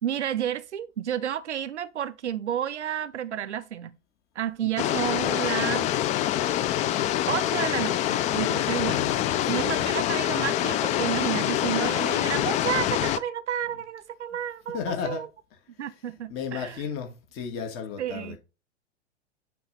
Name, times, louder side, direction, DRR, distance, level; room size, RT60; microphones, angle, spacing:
voice 1, 0.0-4.0 4.4-5.9 7.3-9.1 9.5-14.8 15.0-15.3 15.8-16.8 18.0-18.4, right 10 dB, 80° right, 0.7 m, -31 dB
sound 1, 4.8-13.2, left 12 dB, 20° left, 0.4 m, -25 dB
voice 2, 8.9-9.9 14.7-15.2 15.9-16.0 16.3-18.4, left 6 dB, 40° left, 1.8 m, -34 dB
9.1 x 3.6 x 4.0 m
figure-of-eight pair, 100°, 34 cm